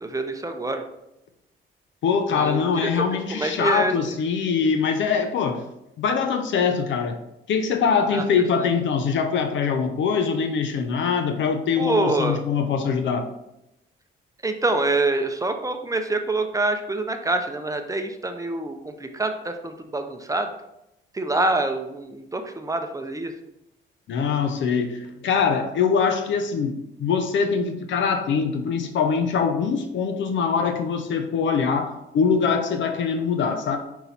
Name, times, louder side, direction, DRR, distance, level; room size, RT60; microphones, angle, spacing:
voice 1, 0.0-0.8 2.3-2.9 3.3-3.9 8.1-8.2 11.8-12.4 14.4-20.5 21.1-23.3, right 2 dB, 15° right, 6 dB, 0.7 m, -26 dB
voice 2, 2.0-5.6 6.0-7.2 7.5-13.3 24.1-33.8, left 6 dB, 70° left, 7 dB, 0.8 m, -23 dB
5.6 x 4.7 x 4.1 m, 0.85 s
cardioid pair, 90°, 20 cm